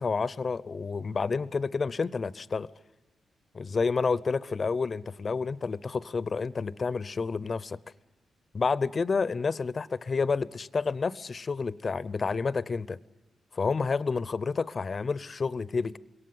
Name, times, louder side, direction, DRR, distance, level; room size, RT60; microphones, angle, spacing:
voice 1, 0.0-2.7 3.5-7.8 8.5-13.0 13.5-16.0, left 4 dB, 45° left, 0.7 m, -29 dB
22.0 x 18.0 x 9.6 m
supercardioid pair, 50°, 0 cm